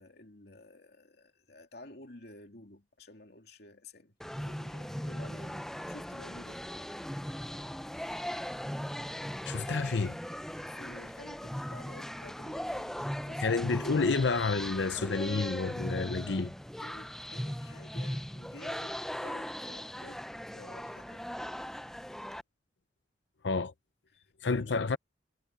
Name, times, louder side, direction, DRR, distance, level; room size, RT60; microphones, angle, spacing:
voice 1, 0.0-6.7 10.7-13.6 16.8-21.3 24.1-24.2 24.5-24.8, left 2 dB, 60° left, 3.1 m, -52 dB
sound 1, 4.2-22.4, equal, ahead, 0.5 m, -39 dB
voice 2, 9.4-10.2 13.4-16.5 23.4-23.7 24.4-25.0, left 4 dB, 80° left, 0.7 m, -29 dB
head